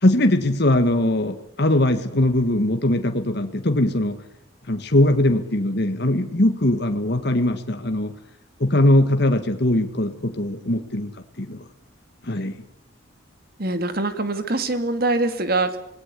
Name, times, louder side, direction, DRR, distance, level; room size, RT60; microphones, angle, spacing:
voice 1, 0.0-4.2 4.7-8.1 8.6-11.1 11.4-11.6 12.3-12.6, left 1 dB, 55° left, 6 dB, 1.7 m, -20 dB
voice 2, 13.6-15.8, right 2 dB, 50° right, 10 dB, 2.3 m, -23 dB
26.5 x 19.5 x 8.4 m, 0.79 s
head